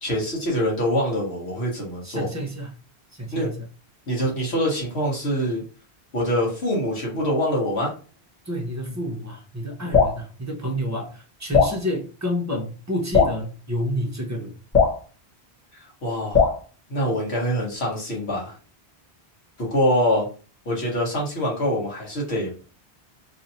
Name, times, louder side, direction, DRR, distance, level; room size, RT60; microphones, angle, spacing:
voice 1, 0.0-2.3 3.3-3.5 4.1-5.6 6.1-7.9 15.7-16.4 16.9-18.5 19.6-20.3 20.6-22.6, equal, 75° left, -3 dB, 1.5 m, -24 dB
voice 2, 2.0-2.7 3.1-3.6 8.4-14.5, equal, 15° right, 1 dB, 0.8 m, -29 dB
Drip, 9.9-10.2 11.5-11.8 13.1-13.4 14.7-15.0 16.3-16.6, left 6 dB, 45° left, 1.2 m, -18 dB
3.2 x 2.7 x 4.1 m, 0.37 s
omnidirectional pair, 1.1 m